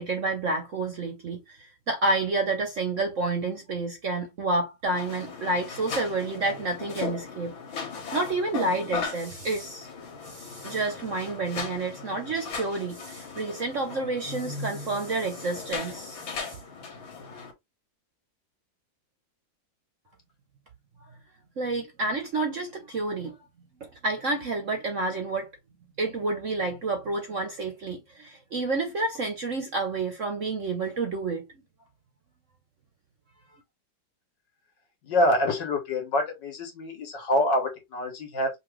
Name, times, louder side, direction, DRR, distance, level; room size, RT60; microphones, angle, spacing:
voice 1, 0.0-7.5 8.1-9.9 10.3-16.6 21.6-23.4 23.8-25.5 26.0-31.5, right 3 dB, 55° right, 0.9 m, -29 dB
sound 1, 4.9-17.5, left 5 dB, 85° left, 2.0 m, -38 dB
voice 2, 35.0-38.5, left 1 dB, 65° left, 2.1 m, -26 dB
5.6 x 2.6 x 3.1 m
omnidirectional pair, 2.1 m